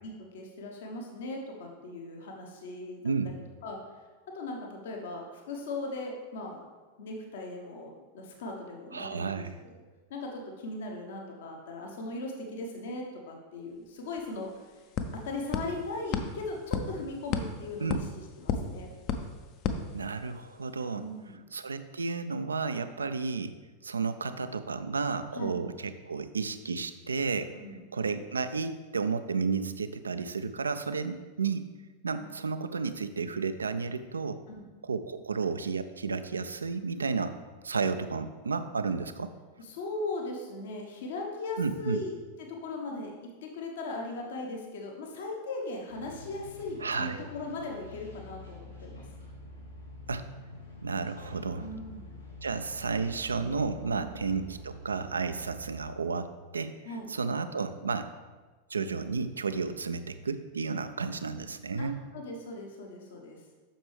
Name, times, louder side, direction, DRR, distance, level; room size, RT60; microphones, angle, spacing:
voice 1, 0.0-3.0 3.6-3.8 4.3-6.6 7.0-9.8 10.1-14.6 15.1-18.1 18.4-18.9 20.9-21.4 25.3-25.6 27.5-27.8 32.2-32.3 34.5-34.7 39.6-42.1 42.4-49.0 51.6-52.2 54.0-54.1 56.8-57.1 61.8-61.9 62.1-63.4, left 2 dB, 60° left, 1 dB, 1.0 m, -38 dB
voice 2, 8.9-9.5 17.8-18.0 19.9-21.1 21.5-23.5 23.8-27.5 27.9-31.6 32.0-34.4 34.8-37.4 37.6-39.3 41.6-42.0 46.8-47.2 50.1-50.3 50.8-51.7 52.4-56.8 57.1-58.1 58.7-62.0, right 4 dB, 75° right, 11 dB, 0.4 m, -32 dB
sound 1, 13.8-13.9 14.2-20.6, left 6 dB, 40° left, 0.6 m, -35 dB
sound 2, 45.9-55.8, equal, 80° left, 1.4 m, -47 dB
7.7 x 6.1 x 3.3 m, 1.3 s
figure-of-eight pair, 90°, 0 cm